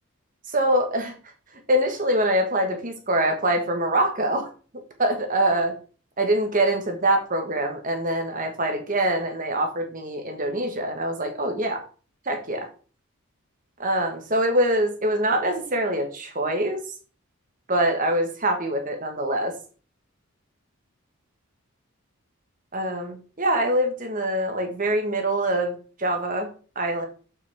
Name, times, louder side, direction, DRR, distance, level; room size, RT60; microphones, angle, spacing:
voice 1, 0.5-1.1 1.7-4.5 5.0-5.7 6.2-11.8 12.3-12.7 13.8-16.8 17.7-19.5 22.7-26.5 26.7-27.1, right 1 dB, 35° right, 4 dB, 1.4 m, -24 dB
7.4 x 5.9 x 3.5 m, 0.38 s
head